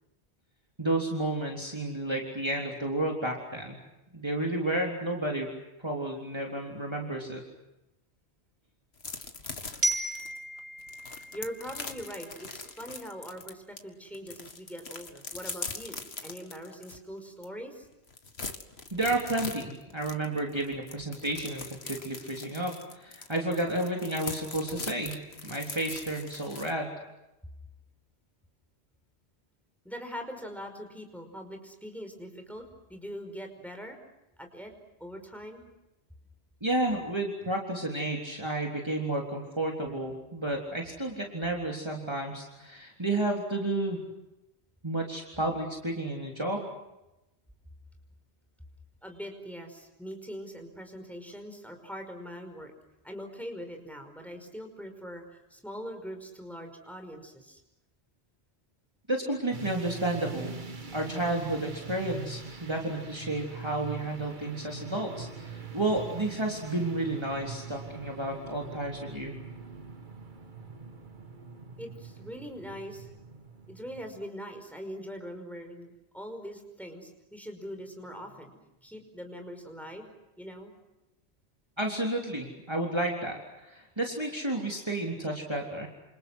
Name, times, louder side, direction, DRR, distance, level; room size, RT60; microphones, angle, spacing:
voice 1, 0.8-3.8 4.1-5.5 5.8-7.4 18.9-27.0 36.6-44.0 44.8-46.7 59.1-60.5 60.9-69.4 81.8-85.9, right 1 dB, 25° right, 0 dB, 3.6 m, -31 dB
sound 1, 9.0-13.8 14.1-17.0 17.4-17.5 17.8-26.7, left 4 dB, 70° left, 2.2 m, -41 dB
Glockenspiel, 9.8-12.7, right 1 dB, 65° right, 3.7 m, -34 dB
voice 2, 11.3-17.9 29.8-32.6 32.9-34.0 34.4-34.7 35.0-35.7 49.0-52.7 53.0-57.6 71.8-73.1 73.7-80.1 80.4-80.7, equal, ahead, 4 dB, 5.3 m, -42 dB
sound 2, 59.5-74.2, right 4 dB, 50° right, 1.6 m, -43 dB
29.0 x 28.0 x 6.3 m, 0.95 s
omnidirectional pair, 1.1 m